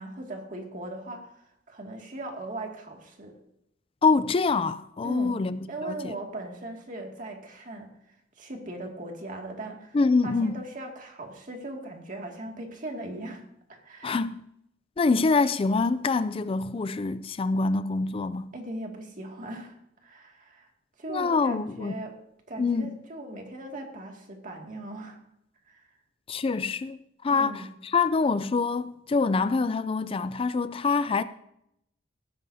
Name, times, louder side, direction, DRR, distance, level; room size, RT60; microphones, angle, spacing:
voice 1, 0.0-3.3 5.0-5.4 5.7-7.9 8.4-10.0 10.2-13.4 13.7-14.2 18.5-19.8 20.0-20.7 21.0-22.2 22.5-25.2 25.7-25.8 27.3-27.7, right 1 dB, 45° right, 2.2 m, -39 dB
voice 2, 4.0-6.1 9.9-10.5 14.0-14.4 15.0-18.5 21.1-21.9 22.6-22.9 26.3-27.0 27.2-31.2, left 4 dB, 30° left, 0.4 m, -25 dB
17.5 x 13.5 x 2.7 m
head